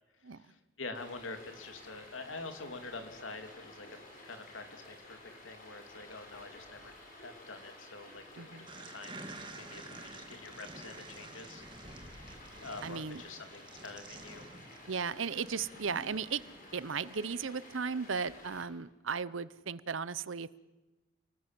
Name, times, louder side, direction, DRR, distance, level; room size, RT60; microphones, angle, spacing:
voice 1, 0.3-3.9 4.2-6.9 7.2-11.6 12.6-14.5, left 3 dB, 85° left, 7 dB, 2.9 m, -46 dB
Stream, 0.9-18.6, left 1 dB, 40° left, 6.2 m, -53 dB
voice 2, 8.4-8.7 12.8-13.2 14.9-16.4 16.7-20.6, right 5 dB, 85° right, 17 dB, 0.8 m, -36 dB
sound 1, 8.7-17.2, right 3 dB, 25° right, 2.2 m, -50 dB
30.0 x 19.5 x 7.6 m, 1.1 s
head